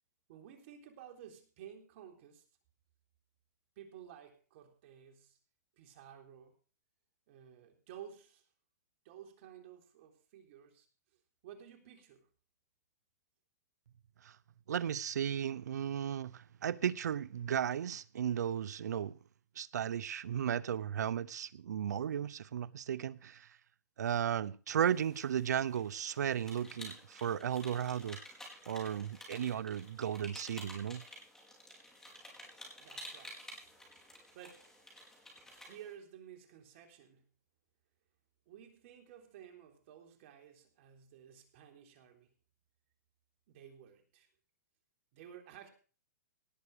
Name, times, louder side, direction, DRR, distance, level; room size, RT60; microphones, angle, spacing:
voice 1, 0.3-2.5 3.8-5.4 5.8-6.6 7.3-8.5 9.0-10.9 11.1-12.3 32.8-33.5 34.3-34.7 35.6-37.3 38.5-42.3 43.5-44.3 45.1-45.7, right 9 dB, 50° right, 3.6 m, -54 dB
voice 2, 14.7-19.2 19.6-23.5 24.0-28.2 28.7-31.0, right 9 dB, 85° right, 0.7 m, -35 dB
sound 1, 24.8-35.9, left 1 dB, 5° left, 4.7 m, -52 dB
18.5 x 8.0 x 4.9 m
hypercardioid pair, 145°, 9 cm